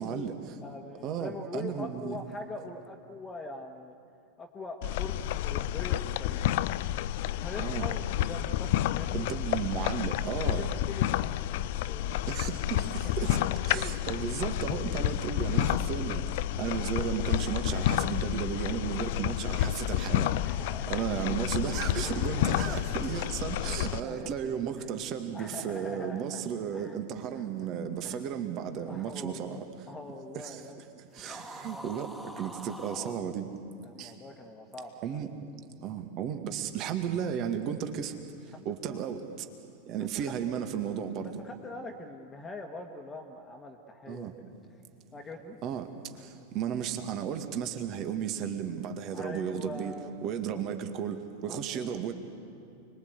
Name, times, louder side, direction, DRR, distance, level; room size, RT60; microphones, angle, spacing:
voice 1, 0.0-0.6 1.0-2.2 7.6-7.9 9.1-10.7 12.3-16.2 16.6-20.3 20.9-29.7 30.4-30.6 31.1-33.5 34.0-34.1 35.0-35.3 35.8-38.1 38.7-39.5 39.9-41.3 44.1-44.3 45.6-45.9 46.2-49.9 50.2-52.1, right 8 dB, 35° right, 7 dB, 2.0 m, -34 dB
voice 2, 0.6-3.9 4.4-6.6 7.2-9.4 10.4-12.3 13.0-13.1 14.2-14.3 20.4-21.1 22.0-22.8 23.6-24.3 24.8-24.9 25.3-26.4 26.7-27.0 27.3-27.7 28.0-28.2 28.8-29.6 29.9-30.8 31.1-31.4 31.7-32.0 33.8-35.2 38.5-39.0 40.0-40.4 41.2-44.3 45.1-45.6 49.1-50.6 51.4-52.0, left 2 dB, 15° left, 3 dB, 1.7 m, -43 dB
sound 1, 4.8-24.0, left 13 dB, 50° left, 0.6 m, -30 dB
sound 2, 31.1-33.2, equal, 5° right, 2.2 m, -44 dB
29.5 x 22.0 x 8.2 m, 2.5 s
figure-of-eight pair, 90°, 0 cm